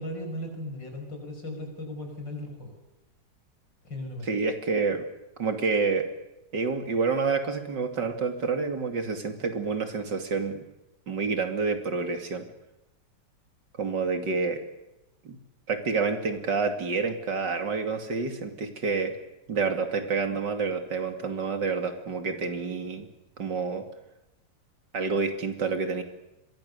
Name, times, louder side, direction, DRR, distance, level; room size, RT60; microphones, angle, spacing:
voice 1, 0.0-2.8 3.8-4.3, left 1 dB, 80° left, 4 dB, 6.3 m, -37 dB
voice 2, 4.2-5.0 5.4-6.1 6.5-10.6 11.1-12.5 13.8-14.6 15.2-15.4 15.7-19.1 19.5-23.1 23.4-23.9 24.9-26.0, right 4 dB, 70° right, 6 dB, 3.1 m, -28 dB
27.0 x 22.0 x 6.9 m, 0.92 s
omnidirectional pair, 2.0 m